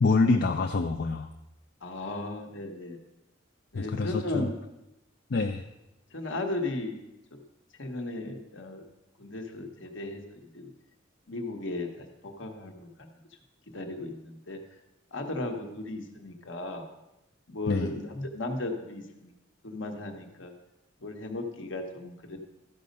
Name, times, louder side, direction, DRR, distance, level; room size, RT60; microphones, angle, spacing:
voice 1, 0.0-1.3 3.7-4.5 5.3-5.6 17.7-17.9, left 3 dB, 50° left, 5 dB, 0.5 m, -26 dB
voice 2, 1.8-3.0 3.7-4.5 6.1-7.0 7.3-7.4 7.8-8.8 9.2-10.7 11.3-13.1 13.7-14.6 15.1-16.9 17.5-19.3 19.6-20.5 21.0-22.4, left 2 dB, 70° left, 3 dB, 1.3 m, -36 dB
13.5 x 5.3 x 5.3 m, 0.94 s
head